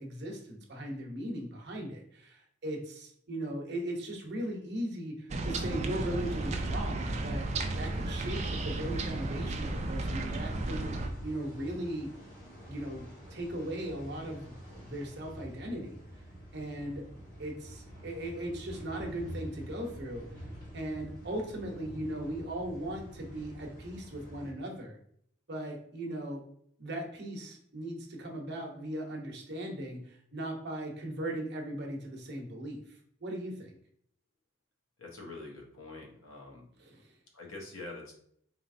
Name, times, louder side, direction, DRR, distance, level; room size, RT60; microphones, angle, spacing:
voice 1, 0.0-10.9 11.2-12.1 12.7-16.0 16.5-17.0 17.4-20.5 20.7-25.0 25.5-26.4 26.8-33.8 36.8-37.1, right 1 dB, 50° right, 1 dB, 0.8 m, -38 dB
sound 1, 5.3-11.1, right 2 dB, 30° right, 0.3 m, -33 dB
sound 2, 5.4-24.5, equal, 40° left, 1.5 m, -47 dB
voice 2, 35.0-36.7 37.3-38.1, left 2 dB, 75° left, 0 dB, 0.9 m, -45 dB
4.0 x 3.0 x 2.6 m, 0.66 s
head